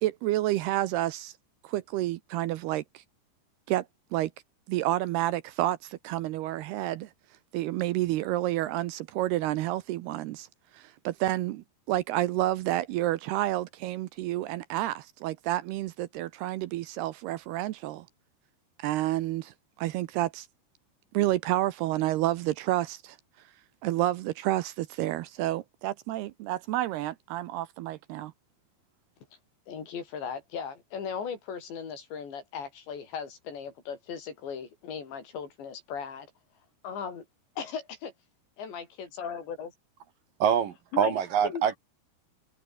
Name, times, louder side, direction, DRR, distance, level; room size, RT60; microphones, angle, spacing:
voice 1, 0.0-1.3 1.6-3.0 3.7-3.9 4.1-4.3 4.7-7.1 7.5-10.5 10.7-18.1 18.8-19.5 19.8-20.5 21.1-23.2 23.8-28.3, right 15 dB, 75° right, 2.6 m, -29 dB
voice 2, 29.7-36.3 36.8-37.3 37.6-37.8 38.6-39.7 40.9-41.2 41.4-41.6, left 6 dB, 75° left, 7.0 m, -37 dB
voice 3, 40.4-41.8, right 8 dB, 60° right, 2.9 m, -25 dB
omnidirectional pair, 5.1 m